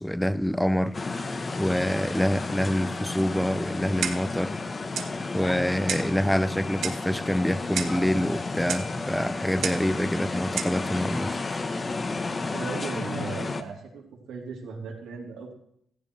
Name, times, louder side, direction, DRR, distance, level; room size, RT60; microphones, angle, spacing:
voice 1, 0.0-4.6 5.3-11.4, equal, 5° left, 0.5 m, -26 dB
sound 1, 0.9-13.6, left 3 dB, 30° left, 1.1 m, -32 dB
Clock, 4.0-4.4 5.0-5.1 5.9-6.2 6.8-7.1 7.8-8.0 8.7-8.9 9.6-9.9 10.6-10.8, right 7 dB, 75° right, 1.2 m, -31 dB
voice 2, 12.5-14.0 14.3-15.5, right 5 dB, 90° right, 3.4 m, -37 dB
15.5 x 14.5 x 3.3 m
cardioid pair, 105°, 0 cm